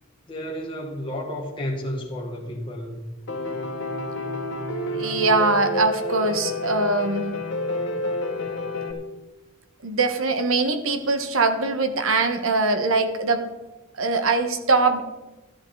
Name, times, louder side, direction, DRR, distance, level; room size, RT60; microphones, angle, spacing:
voice 1, 0.3-3.1, equal, 25° left, -2 dB, 1.7 m, -31 dB
Piano, 3.3-8.9, left 1 dB, 60° left, 1.7 m, -29 dB
voice 2, 4.9-7.3 9.8-13.5 14.0-15.0, right 3 dB, 75° right, 7 dB, 1.3 m, -22 dB
13.0 x 11.0 x 3.9 m, 1.1 s
head